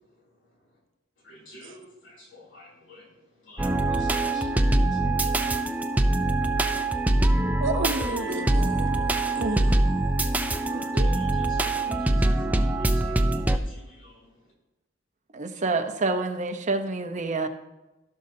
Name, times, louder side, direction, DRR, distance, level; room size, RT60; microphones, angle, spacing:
voice 1, 1.2-3.1 3.4-5.3 8.4-8.5 8.8-9.4 10.7-14.3 15.7-15.9, equal, 90° left, -4 dB, 2.9 m, -49 dB
sound 1, 3.6-13.6, right 1 dB, 10° right, 0.4 m, -23 dB
voice 2, 7.6-9.7 10.7-11.1, right 3 dB, 80° right, 6 dB, 0.8 m, -32 dB
voice 3, 15.3-17.5, right 3 dB, 40° right, 6 dB, 0.8 m, -27 dB
15.5 x 6.4 x 2.7 m, 1.0 s
head